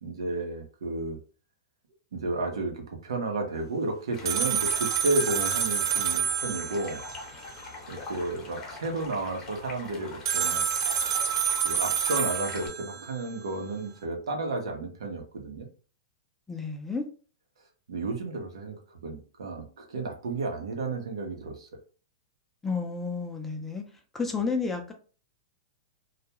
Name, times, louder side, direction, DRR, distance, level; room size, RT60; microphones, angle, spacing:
voice 1, 0.0-1.2 2.1-7.0 7.9-10.6 11.6-15.7 17.9-21.7, right 2 dB, 90° right, 2 dB, 0.8 m, -32 dB
Stream, 4.1-12.7, left 3 dB, 25° left, 0.8 m, -43 dB
sound 1, 4.3-7.2 10.3-13.1, right 7 dB, 65° right, 0.4 m, -28 dB
voice 2, 16.5-17.0 22.6-23.8 24.1-24.9, left 4 dB, 10° left, 4 dB, 0.4 m, -31 dB
2.3 x 2.2 x 2.9 m, 0.38 s
hypercardioid pair, 140°, 3 cm